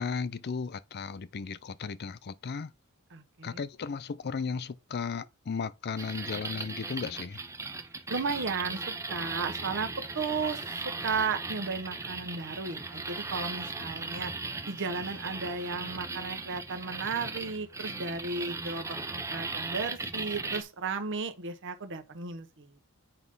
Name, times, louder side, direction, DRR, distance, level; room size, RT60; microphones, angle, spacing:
voice 1, 0.0-2.7 3.4-7.4, left 5 dB, 50° left, 0.5 m, -35 dB
voice 2, 3.1-3.6 8.1-14.3 14.7-22.7, right 4 dB, 60° right, 1.1 m, -34 dB
sound 1, 6.0-20.6, right 3 dB, 15° right, 0.7 m, -37 dB
8.1 x 3.6 x 5.4 m
head